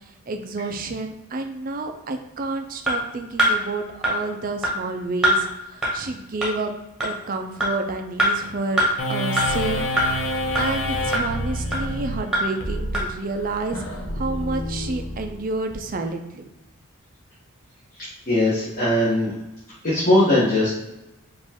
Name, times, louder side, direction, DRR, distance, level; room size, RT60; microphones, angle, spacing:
voice 1, 0.3-6.7 7.0-9.8 10.1-13.8 14.1-16.4, right 3 dB, 40° right, 6 dB, 0.4 m, -29 dB
sound 1, 2.9-3.0 3.4-3.5 4.0-4.1 4.6-4.7 5.2-5.4 5.8-5.9 6.4-6.5 7.0-7.1 7.6-7.7 8.2-8.3 8.8-8.9 9.4-9.5 10.0-10.1 10.6-10.7 11.1-11.2 11.7-11.8 12.3-12.4 12.9-13.0, right 1 dB, 5° right, 1.1 m, -20 dB
sound 2, 9.0-15.7, left 1 dB, 60° left, 0.7 m, -28 dB
voice 2, 18.3-19.3 19.8-20.8, left 1 dB, 40° left, -10 dB, 1.3 m, -19 dB
5.1 x 2.5 x 3.6 m, 0.94 s
head